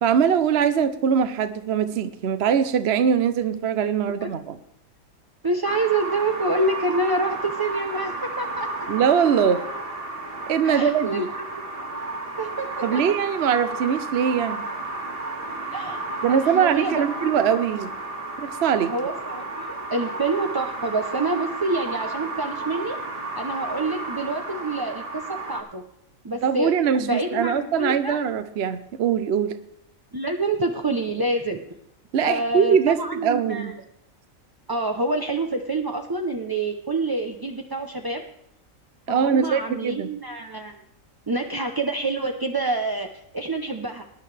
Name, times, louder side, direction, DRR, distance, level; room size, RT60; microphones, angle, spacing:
voice 1, 0.0-4.6 8.9-9.6 10.5-11.2 12.8-14.6 16.2-17.9 18.4-18.9 26.4-29.5 32.1-33.0 33.2-33.7 39.1-40.1, right 7 dB, 55° right, 10 dB, 0.8 m, -22 dB
voice 2, 5.4-8.7 10.6-11.9 12.4-13.2 15.7-17.6 18.9-23.0 23.3-25.8 26.2-26.7 27.0-28.2 30.1-31.6 32.2-33.7 34.7-38.2 39.1-40.8 41.3-43.1 43.3-44.0, right 2 dB, 25° right, 3 dB, 0.5 m, -27 dB
sound 1, 5.6-25.6, right 2 dB, 40° right, 2.3 m, -33 dB
19.5 x 10.5 x 3.3 m, 0.76 s
omnidirectional pair, 1.5 m